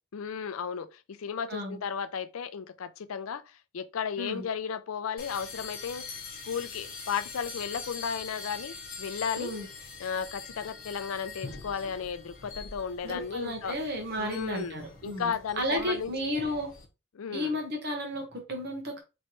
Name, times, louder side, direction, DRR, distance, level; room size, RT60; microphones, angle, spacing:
voice 1, 0.1-3.4 3.7-6.0 6.5-9.5 10.0-13.8 14.2-16.3 17.2-17.5, left 7 dB, 85° left, 0.4 m, -34 dB
voice 2, 1.5-1.8 4.2-4.4 9.3-9.7 13.0-16.7 17.3-19.0, equal, 50° right, 1.0 m, -33 dB
sound 1, 5.2-16.8, left 4 dB, 45° left, 1.1 m, -43 dB
4.4 x 3.1 x 3.0 m
head